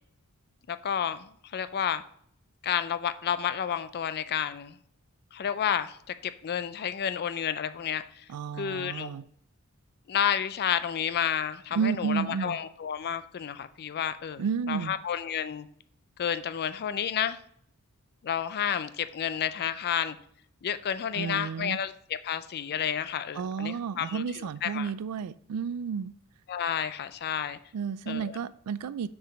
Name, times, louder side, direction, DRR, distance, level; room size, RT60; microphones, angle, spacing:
voice 1, 0.7-2.0 2.6-4.8 5.3-6.0 6.4-8.3 8.6-9.1 10.1-15.7 16.2-17.4 18.2-20.2 20.6-24.9 26.5-27.6 28.1-28.4, left 9 dB, 45° left, 0.4 m, -31 dB
voice 2, 8.3-9.3 11.7-12.6 14.4-14.9 21.1-21.8 23.3-26.2 27.7-29.1, right 6 dB, 90° right, 0.4 m, -32 dB
6.5 x 4.8 x 3.9 m
head